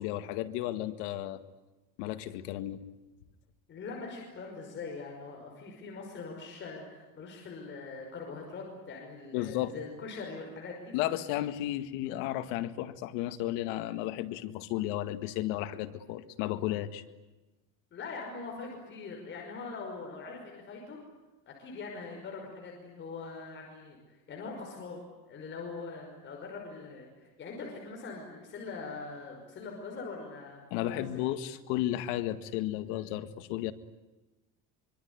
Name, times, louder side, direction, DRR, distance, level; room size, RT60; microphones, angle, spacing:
voice 1, 0.0-1.4 2.0-2.8 9.3-9.8 10.9-17.0 30.7-33.7, left 14 dB, 90° left, 10 dB, 2.0 m, -33 dB
voice 2, 3.7-10.9 17.9-21.0 21.5-31.3, left 4 dB, 30° left, 0 dB, 5.6 m, -42 dB
25.0 x 24.5 x 9.7 m, 1.1 s
cardioid pair, 160°, 35 cm